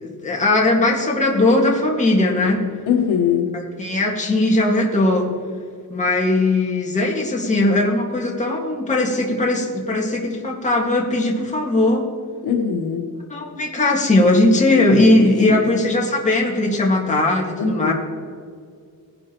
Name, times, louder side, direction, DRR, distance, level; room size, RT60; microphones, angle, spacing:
voice 1, 0.0-2.6 3.5-5.3 5.9-12.1 13.3-17.9, left 2 dB, 20° left, -2 dB, 1.9 m, -19 dB
voice 2, 2.9-3.5 12.4-13.1 15.2-15.6 17.6-17.9, left 7 dB, 80° left, 4 dB, 1.3 m, -21 dB
18.5 x 10.5 x 3.0 m, 2.2 s
cardioid pair, 140°, 38 cm